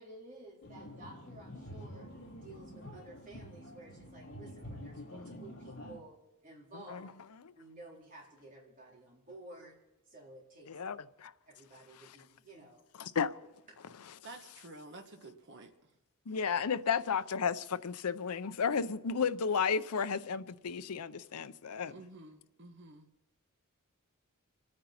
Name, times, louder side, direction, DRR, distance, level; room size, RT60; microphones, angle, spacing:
voice 1, 0.0-7.1 7.5-9.8 10.0-10.8 11.5-12.9 13.7-13.8, right 2 dB, 40° right, 3.9 m, -53 dB
sound 1, 0.6-6.0, equal, 55° left, 3.2 m, -48 dB
voice 2, 10.7-11.3 13.0-13.3 16.3-21.9, left 6 dB, 85° left, 0.6 m, -33 dB
voice 3, 14.2-15.9 21.9-23.1, right 2 dB, 55° right, 1.2 m, -51 dB
28.5 x 9.7 x 4.3 m
head